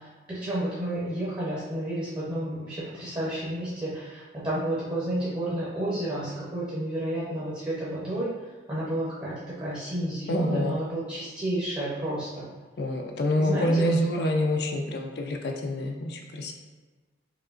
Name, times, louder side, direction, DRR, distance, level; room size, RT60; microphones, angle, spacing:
voice 1, 0.3-8.3 8.7-12.4 13.4-13.9, right 1 dB, 25° right, -9 dB, 0.8 m, -31 dB
voice 2, 10.3-10.8 12.8-16.5, left 1 dB, 60° left, 2 dB, 0.4 m, -26 dB
4.9 x 2.8 x 2.5 m, 1.4 s
head